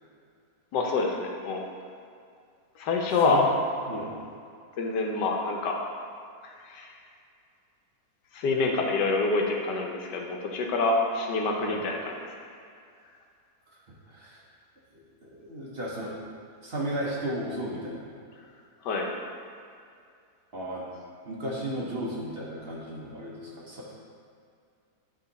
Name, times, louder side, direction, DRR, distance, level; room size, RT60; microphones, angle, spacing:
voice 1, 0.7-1.7 2.8-3.4 4.8-5.8 6.4-7.0 8.3-12.3 18.8-19.2, left 3 dB, 90° left, 1 dB, 1.4 m, -27 dB
voice 2, 3.9-4.2 11.6-11.8 14.1-14.4 15.2-16.2 16.6-18.1 20.5-20.8 21.2-23.9, right 1 dB, 40° right, -5 dB, 1.0 m, -34 dB
9.1 x 3.7 x 4.1 m, 2.4 s
omnidirectional pair, 1.8 m